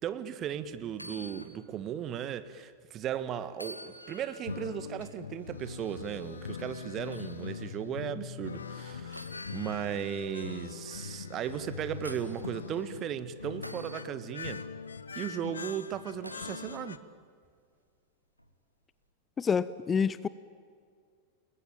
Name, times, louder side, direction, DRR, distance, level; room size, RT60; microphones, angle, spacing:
voice 1, 0.0-9.2 9.5-14.6 15.1-17.0, right 9 dB, 30° right, 13 dB, 1.6 m, -36 dB
sound 1, 0.9-1.6 2.0-2.1 3.5-4.5 7.1-7.4 9.1-10.1 11.5-12.5 13.6-14.0 16.2-16.6 18.4-18.5, left 1 dB, 90° left, 2.2 m, -47 dB
sound 2, 4.4-17.0, left 5 dB, 70° left, 1.1 m, -42 dB
voice 2, 19.4-20.3, left 6 dB, 20° left, 18 dB, 0.7 m, -27 dB
29.5 x 21.5 x 9.0 m, 2.1 s
figure-of-eight pair, 90°, 0 cm